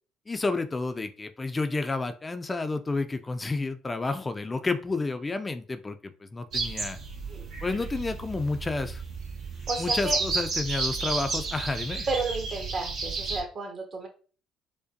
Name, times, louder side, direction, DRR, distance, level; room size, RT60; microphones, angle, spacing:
voice 1, 0.3-7.0 7.6-9.0 9.8-12.0, left 3 dB, 25° left, 8 dB, 0.4 m, -30 dB
sound 1, 6.5-13.4, right 4 dB, 65° right, 1.1 m, -32 dB
voice 2, 9.7-10.2 12.1-14.1, right 3 dB, 45° right, 1 dB, 1.4 m, -32 dB
4.9 x 2.1 x 2.7 m, 0.38 s
supercardioid pair, 65°, 0 cm